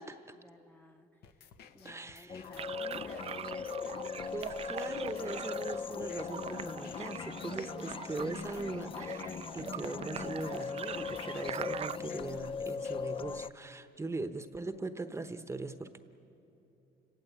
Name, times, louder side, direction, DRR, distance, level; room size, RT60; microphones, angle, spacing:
voice 1, 0.0-1.3 1.6-3.7, left 2 dB, 10° left, 4 dB, 0.9 m, -56 dB
sound 1, 1.2-13.2, left 7 dB, 70° left, 1.1 m, -56 dB
voice 2, 1.8-2.5 4.3-16.0, right 3 dB, 15° right, 9 dB, 1.0 m, -40 dB
sound 2, 2.3-13.5, left 6 dB, 30° left, 0.5 m, -39 dB
sound 3, 2.6-12.0, right 8 dB, 35° right, 0.5 m, -43 dB
29.0 x 17.5 x 8.5 m, 2.9 s
cardioid pair, 110°, 17 cm